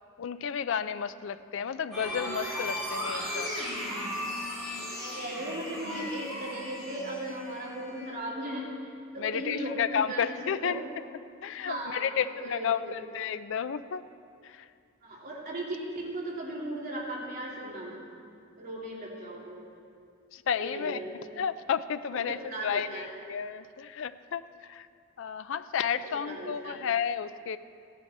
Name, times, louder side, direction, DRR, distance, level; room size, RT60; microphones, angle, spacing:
voice 1, 0.2-3.5 9.2-10.8 11.4-14.0 14.4-14.7 20.3-21.0 21.4-24.9 25.2-27.6, left 7 dB, 65° left, 13 dB, 0.4 m, -32 dB
sound 1, 1.9-8.1, left 1 dB, ahead, 3.4 m, -36 dB
voice 2, 4.9-8.7 9.1-10.8 11.6-13.0 15.0-18.0 18.6-19.8 20.6-21.1 22.1-23.1 26.0-26.8, right 1 dB, 45° right, -5 dB, 2.8 m, -37 dB
14.5 x 11.0 x 4.2 m, 2.3 s
head